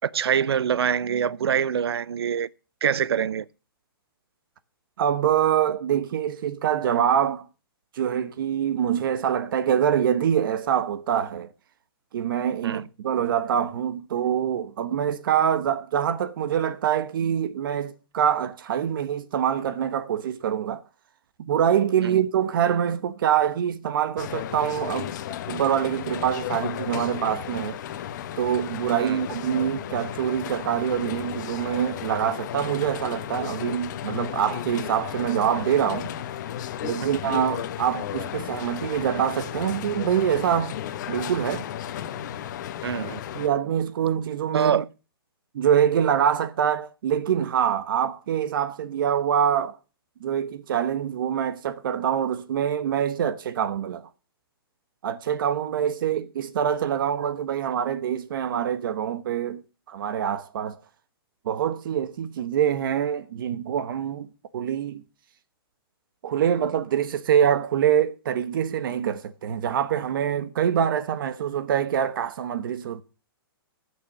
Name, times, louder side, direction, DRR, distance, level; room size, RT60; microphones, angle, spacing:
voice 1, 0.0-2.5 2.8-3.4 12.6-12.8 22.0-22.2 29.0-29.2 37.0-37.2 42.8-43.2 44.5-44.9, right 8 dB, 90° right, 0.6 m, -25 dB
voice 2, 5.0-7.5 7.9-11.5 12.1-20.8 21.4-25.1 25.5-27.8 28.4-36.1 36.8-40.8 41.1-41.7 43.3-44.8 45.5-49.8 50.2-54.1 55.0-59.6 59.9-60.8 61.4-65.0 66.2-73.0, right 9 dB, 60° right, 1.0 m, -25 dB
sound 1, 24.2-43.5, left 11 dB, 50° left, 1.1 m, -34 dB
14.5 x 6.4 x 6.9 m
hypercardioid pair, 155°, 13 cm